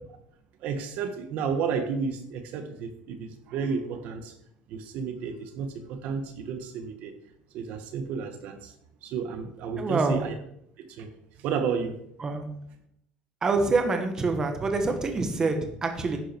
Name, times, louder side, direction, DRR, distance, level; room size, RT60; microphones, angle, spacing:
voice 1, 0.6-4.3 4.7-7.1 7.5-8.7 9.0-10.3 10.9-11.1 11.4-12.0, right 6 dB, 55° right, 7 dB, 1.5 m, -32 dB
voice 2, 9.8-10.2 12.2-12.4 13.4-16.2, right 3 dB, 20° right, 5 dB, 1.5 m, -26 dB
11.0 x 9.7 x 4.6 m, 0.72 s
cardioid pair, 160°, 3 cm